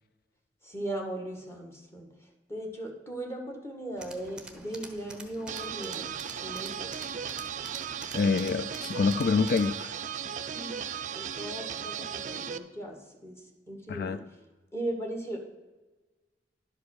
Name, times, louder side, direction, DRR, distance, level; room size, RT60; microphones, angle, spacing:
voice 1, 0.6-7.1 10.4-10.9 11.1-14.2 14.7-15.4, right 1 dB, 15° left, 2 dB, 1.5 m, -38 dB
Tools, 4.0-9.8, right 2 dB, 5° right, 0.9 m, -47 dB
sound 1, 5.5-12.6, right 8 dB, 45° right, 0.4 m, -36 dB
voice 2, 8.1-9.9 13.9-14.2, left 4 dB, 55° left, 11 dB, 0.3 m, -26 dB
11.0 x 5.3 x 6.3 m, 1.2 s
head